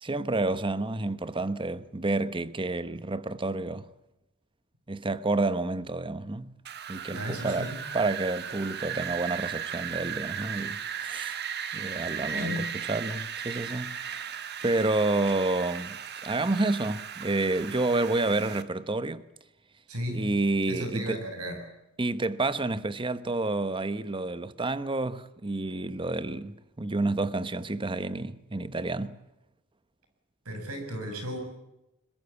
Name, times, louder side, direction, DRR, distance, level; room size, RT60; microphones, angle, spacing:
voice 1, 0.0-3.9 4.9-6.5 6.9-11.4 11.7-19.2 20.1-21.2 22.0-29.2, right 2 dB, 25° right, 0.9 m, -29 dB
Wind, 6.7-18.6, right 8 dB, 50° right, 1.4 m, -36 dB
voice 2, 7.1-7.8 12.3-12.7 19.9-20.3 20.7-21.7 30.5-31.4, equal, 85° right, 7.0 m, -34 dB
22.0 x 21.0 x 8.3 m
head